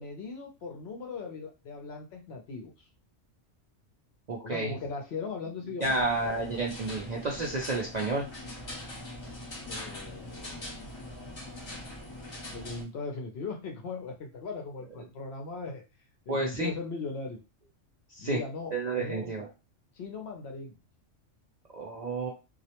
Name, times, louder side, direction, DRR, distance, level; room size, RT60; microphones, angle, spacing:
voice 1, 0.0-2.7 4.4-6.0 9.7-10.8 12.5-15.8 16.3-17.4 18.2-19.3 19.9-20.8, left 4 dB, 65° left, 3 dB, 0.7 m, -38 dB
voice 2, 4.3-4.7 5.8-8.3 9.7-9.8 16.3-16.7 18.1-18.4 18.7-19.5 21.7-22.3, right 2 dB, 60° right, -1 dB, 0.4 m, -31 dB
sound 1, 5.8-12.8, left 1 dB, 35° left, 0.4 m, -42 dB
2.4 x 2.0 x 2.8 m, 0.29 s
omnidirectional pair, 1.3 m